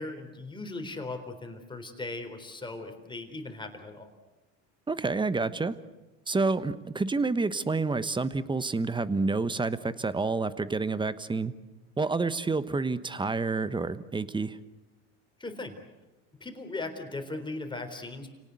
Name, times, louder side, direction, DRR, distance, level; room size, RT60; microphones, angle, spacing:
voice 1, 0.0-4.1 15.4-15.8 16.4-18.3, left 2 dB, 10° left, 5 dB, 4.0 m, -38 dB
voice 2, 4.9-5.8 6.3-11.5 12.0-14.6, right 3 dB, 10° right, 14 dB, 1.1 m, -28 dB
29.5 x 18.5 x 8.3 m, 1.1 s
supercardioid pair, 100°, 37 cm